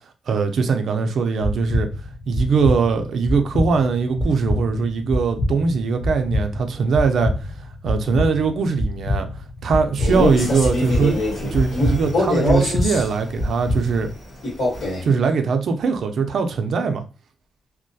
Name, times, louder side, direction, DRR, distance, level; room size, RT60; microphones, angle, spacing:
voice 1, 0.3-1.9 2.3-7.3 7.8-9.3 9.6-14.1 15.0-17.0, right 5 dB, 60° right, 0.4 m, -21 dB
sound 1, 1.4-14.1, left 1 dB, 30° left, 0.5 m, -26 dB
Male speech man speaking, 9.9-13.1 14.4-15.1, left 2 dB, 80° left, 1.3 m, -23 dB
2.2 x 2.1 x 2.6 m
wide cardioid pair, 155°, 0 cm